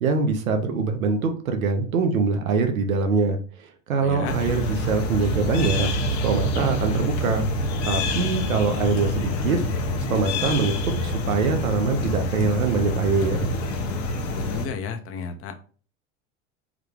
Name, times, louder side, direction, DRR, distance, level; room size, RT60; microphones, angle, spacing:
voice 1, 0.0-5.9 6.2-7.5 7.9-9.6 10.1-13.5, right 4 dB, 85° right, 6 dB, 0.8 m, -24 dB
voice 2, 4.0-4.4 14.3-15.6, left 6 dB, 35° left, 7 dB, 0.6 m, -33 dB
sound 1, 4.2-14.7, left 1 dB, 65° left, 0.9 m, -26 dB
3.6 x 2.3 x 3.4 m, 0.39 s
hypercardioid pair, 85°, 40 cm